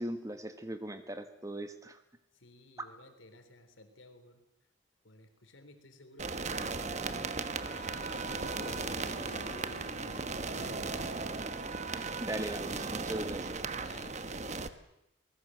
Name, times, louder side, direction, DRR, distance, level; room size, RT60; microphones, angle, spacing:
voice 1, 0.0-2.0 2.8-2.9 11.9-13.6, right 1 dB, 15° right, 9 dB, 1.6 m, -39 dB
voice 2, 2.3-4.4 5.0-7.3 7.9-9.0 9.6-11.2 13.8-14.6, left 1 dB, 85° left, 8 dB, 3.6 m, -55 dB
sound 1, 6.2-14.7, right 4 dB, 35° right, 1.2 m, -37 dB
sound 2, 6.9-13.4, left 2 dB, 60° left, 2.9 m, -51 dB
24.0 x 20.0 x 7.8 m, 0.83 s
head